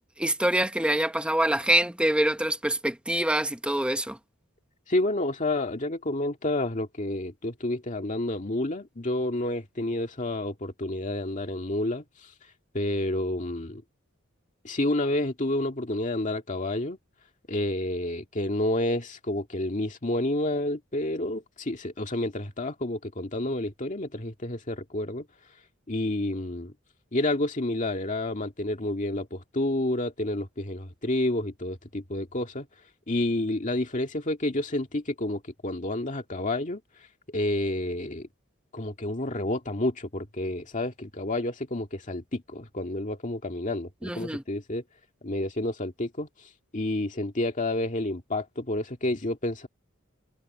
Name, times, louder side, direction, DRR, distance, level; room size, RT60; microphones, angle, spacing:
voice 1, 0.2-4.2 44.0-44.4, right 1 dB, 5° right, 1.0 m, -25 dB
voice 2, 4.9-12.3 12.7-13.8 14.6-17.0 17.5-25.2 25.9-26.7 27.1-32.7 33.1-36.8 37.3-38.3 38.7-44.8 45.2-49.7, left 1 dB, 35° left, 2.1 m, -29 dB
head